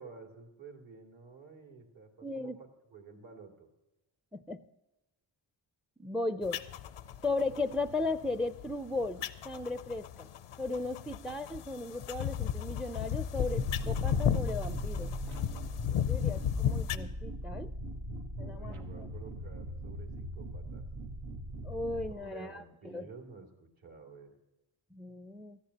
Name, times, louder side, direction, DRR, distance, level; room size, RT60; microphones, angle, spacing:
voice 1, 0.0-3.7 16.4-16.5 18.4-20.8 22.1-24.4, right 5 dB, 70° right, 2 dB, 2.8 m, -51 dB
voice 2, 2.2-2.6 4.3-4.6 6.0-6.6 7.2-10.3 10.6-15.1 16.1-17.7 18.4-19.1 21.6-23.1 24.9-25.6, left 3 dB, ahead, 12 dB, 0.4 m, -36 dB
sound 1, 6.4-17.0, left 9 dB, 90° left, 0.7 m, -34 dB
sound 2, 13.3-22.1, right 1 dB, 85° right, 1.3 m, -40 dB
17.5 x 13.5 x 2.9 m, 0.97 s
cardioid pair, 70°, 48 cm